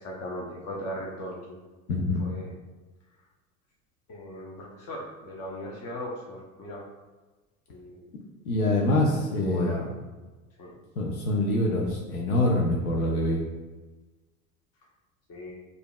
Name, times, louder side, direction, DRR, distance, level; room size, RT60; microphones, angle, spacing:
voice 1, 0.0-1.6 2.2-2.6 4.1-6.8 7.7-8.0 8.9-9.0 9.4-9.9 10.6-10.7 15.3-15.5, equal, 35° left, -2 dB, 0.8 m, -38 dB
voice 2, 1.9-2.2 8.4-9.9 11.0-13.4, left 1 dB, 85° left, -1 dB, 0.7 m, -25 dB
5.1 x 2.6 x 2.3 m, 1.2 s
hypercardioid pair, 75°, 42 cm